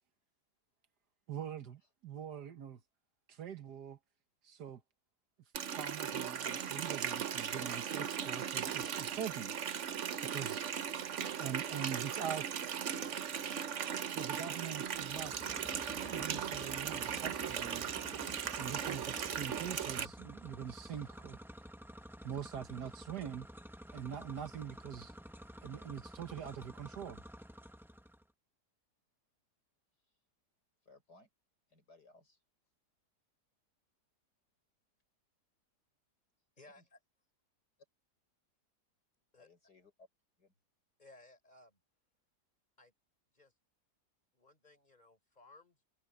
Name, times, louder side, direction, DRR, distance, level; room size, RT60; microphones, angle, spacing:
voice 1, 1.3-2.8 3.3-4.0 4.4-4.8 5.6-9.5 10.2-10.7 11.4-12.7 14.1-15.3 16.1-17.9 18.6-21.4 22.2-23.5 23.9-25.1 25.6-27.2, right 8 dB, 75° right, 1.8 m, -43 dB
Water tap faucet, 5.5-20.0, right 8 dB, 55° right, 1.1 m, -38 dB
sound 1, 14.8-28.2, equal, ahead, 0.8 m, -51 dB
voice 2, 30.8-31.3 31.7-32.4 36.6-36.9 39.4-40.1 40.4-40.5, left 3 dB, 80° left, 7.5 m, -63 dB
voice 3, 36.6-37.0 39.3-39.5 41.0-41.8 42.8-42.9 43.3-43.5 44.3-45.8, left 2 dB, 25° left, 5.0 m, -60 dB
omnidirectional pair, 1.8 m